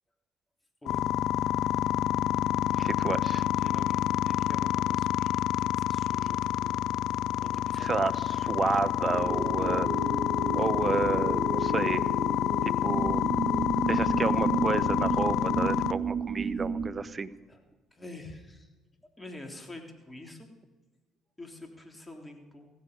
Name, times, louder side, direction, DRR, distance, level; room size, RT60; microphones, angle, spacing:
sound 1, 0.9-15.9, left 12 dB, 65° left, 0.4 m, -28 dB
voice 1, 2.8-3.5 7.7-8.1 8.5-9.9 10.5-12.1 12.6-13.2 13.9-17.3, right 4 dB, 35° right, 14 dB, 0.8 m, -30 dB
voice 2, 3.5-8.0 8.3-8.5 17.5-17.6 17.9-18.7 19.2-20.5 21.4-22.7, left 2 dB, 15° left, 3 dB, 3.4 m, -47 dB
sound 2, 9.1-16.9, right 5 dB, 55° right, 2.0 m, -32 dB
16.5 x 15.5 x 5.3 m, 1.3 s
hypercardioid pair, 55°, 0 cm